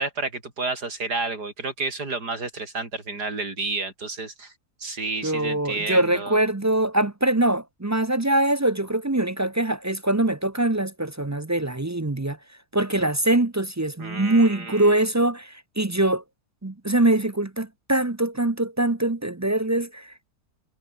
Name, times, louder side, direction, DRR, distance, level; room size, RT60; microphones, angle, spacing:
voice 1, 0.0-4.5 4.8-6.4 14.0-15.0, right 3 dB, 80° right, 5.0 m, -30 dB
voice 2, 5.2-12.4 12.7-16.2 16.6-20.1, right 1 dB, 20° right, 0.4 m, -23 dB
omnidirectional pair, 1.7 m